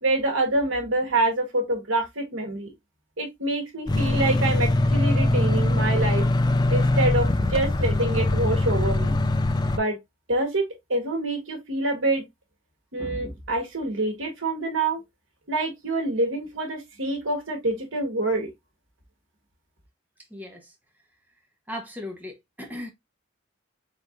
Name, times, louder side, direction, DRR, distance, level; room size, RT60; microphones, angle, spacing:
voice 1, 0.0-2.7 3.2-6.2 6.7-9.2 9.7-10.0 10.3-12.2 12.9-15.0 15.5-18.5, right 2 dB, 75° right, 1.5 m, -26 dB
sound 1, 3.9-9.8, left 2 dB, 20° left, 0.3 m, -22 dB
voice 2, 20.3-20.7 21.7-22.9, left 1 dB, 10° right, 0.9 m, -37 dB
4.3 x 4.0 x 2.4 m
head